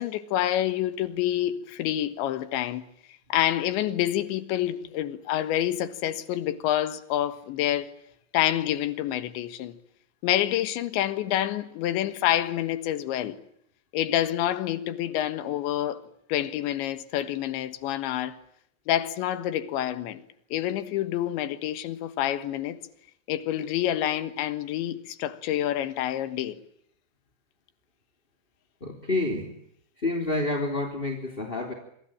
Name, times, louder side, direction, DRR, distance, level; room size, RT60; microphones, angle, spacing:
voice 1, 0.0-2.9 3.3-7.9 8.3-9.8 10.2-13.4 13.9-16.0 16.3-18.4 18.9-20.2 20.5-22.8 23.3-26.6, left 12 dB, 70° left, 3.6 m, -27 dB
voice 2, 28.8-29.5 30.0-31.7, left 2 dB, 15° left, 2.6 m, -28 dB
26.0 x 26.0 x 8.8 m
omnidirectional pair, 5.6 m